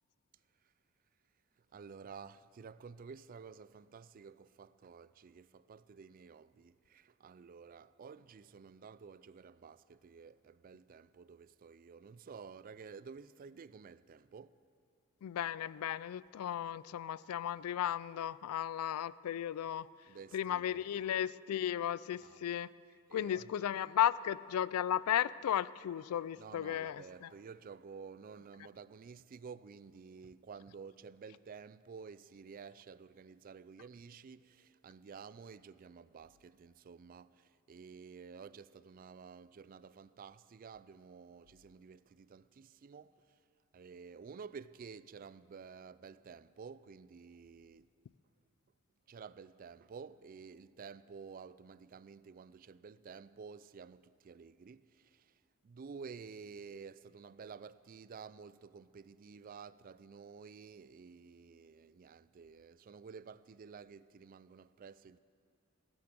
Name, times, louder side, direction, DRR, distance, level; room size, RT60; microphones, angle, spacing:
voice 1, 1.6-14.6 20.1-21.1 22.2-22.4 23.1-23.5 26.4-43.4 43.7-47.9 49.1-65.2, right 5 dB, 40° right, 0.3 m, -52 dB
voice 2, 15.2-19.9 20.3-22.7 23.1-27.3, left 10 dB, 90° left, 0.3 m, -35 dB
15.5 x 12.0 x 7.7 m
head